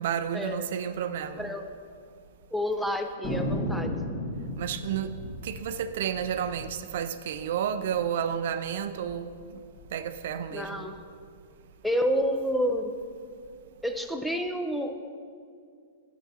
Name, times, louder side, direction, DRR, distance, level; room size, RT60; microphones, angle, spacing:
voice 1, 0.0-1.5 4.6-5.1 5.4-9.3 9.9-10.8, right 8 dB, 65° right, 0.4 m, -31 dB
voice 2, 1.4-1.7 2.5-4.2 10.5-11.0 11.8-12.9 13.8-14.9, equal, ahead, 0.5 m, -29 dB
Thunder, 3.2-8.1 8.3-8.4 8.6-9.2 9.7-10.9, equal, 30° left, 1.8 m, -35 dB
10.0 x 6.8 x 2.8 m
hypercardioid pair, 130°, 0 cm